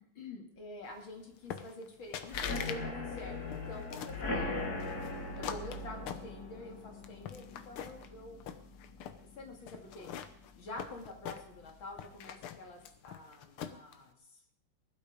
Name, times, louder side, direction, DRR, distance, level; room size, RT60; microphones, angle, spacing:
voice 1, 0.1-4.7 5.3-8.5 9.4-10.1 10.5-14.4, left 2 dB, 65° left, 2 dB, 3.1 m, -47 dB
sound 1, 1.5-1.9 2.1-2.8 3.1-4.2 4.8-6.7 7.0-8.1 8.4-9.2 9.7-11.7 12.0-13.9, left 8 dB, 85° left, 1.9 m, -43 dB
sound 2, 2.3-9.9 10.3-10.7 10.9-11.0 11.4-11.5, left 2 dB, 45° left, 2.6 m, -40 dB
17.0 x 12.0 x 5.2 m, 0.67 s
omnidirectional pair, 2.3 m